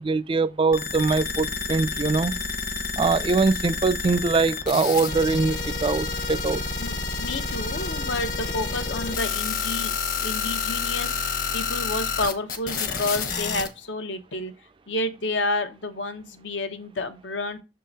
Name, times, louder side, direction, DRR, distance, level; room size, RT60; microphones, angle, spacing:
voice 1, 0.0-2.3 3.0-6.6, right 4 dB, 30° right, 0.3 m, -23 dB
sound 1, 0.7-13.7, left 5 dB, 50° left, 1.0 m, -29 dB
voice 2, 6.8-9.9 10.2-14.5 14.9-17.6, left 2 dB, 85° left, 0.9 m, -30 dB
7.0 x 3.8 x 4.0 m
head